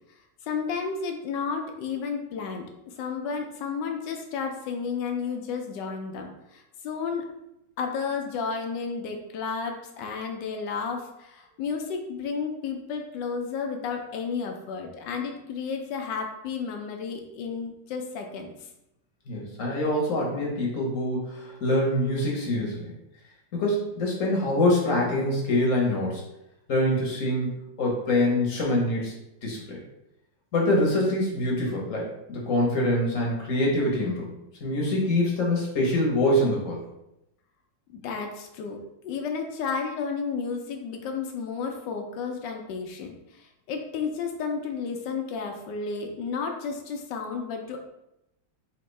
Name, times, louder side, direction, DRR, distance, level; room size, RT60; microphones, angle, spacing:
voice 1, 0.4-7.3 7.8-18.7 37.9-38.8 39.0-47.8, left 5 dB, 75° left, 3 dB, 1.2 m, -32 dB
voice 2, 19.3-22.9 23.5-26.2 26.7-27.5 27.8-29.1 29.4-29.8 30.5-34.3 34.6-36.8, left 1 dB, 55° left, -2 dB, 1.1 m, -25 dB
4.3 x 2.8 x 3.1 m, 0.86 s
omnidirectional pair, 2.0 m